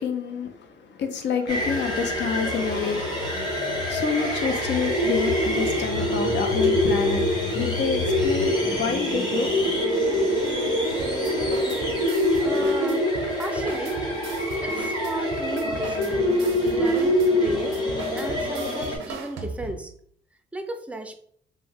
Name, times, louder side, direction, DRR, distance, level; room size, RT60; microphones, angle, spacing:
voice 1, 0.0-9.5, left 5 dB, 65° left, 6 dB, 0.6 m, -28 dB
sound 1, 1.5-19.0, left 1 dB, 20° left, 1.2 m, -25 dB
sound 2, 11.0-19.9, right 5 dB, 80° right, 0.5 m, -39 dB
voice 2, 12.4-13.1 13.4-14.0 14.6-19.9 20.5-21.1, right 1 dB, 5° right, 5 dB, 0.4 m, -34 dB
2.7 x 2.1 x 3.4 m, 0.62 s
cardioid pair, 90°, 20 cm